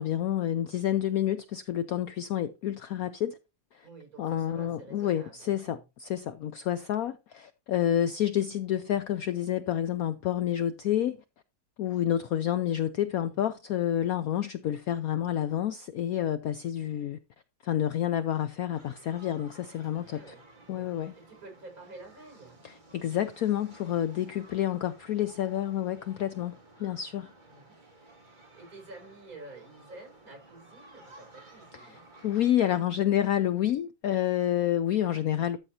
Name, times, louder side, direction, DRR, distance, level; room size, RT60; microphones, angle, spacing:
voice 1, 0.0-3.4 4.2-11.2 11.8-17.2 17.6-20.2 20.7-21.1 22.6-27.3 31.9-32.0 32.2-35.6, left 11 dB, 70° left, 0.9 m, -29 dB
voice 2, 3.8-5.8 13.2-13.5 20.1-22.6 27.5-27.8 28.3-32.1, right 2 dB, 50° right, 5.1 m, -50 dB
sound 1, 18.7-32.5, right 2 dB, 25° right, 1.9 m, -55 dB
13.0 x 6.6 x 2.8 m
omnidirectional pair, 2.0 m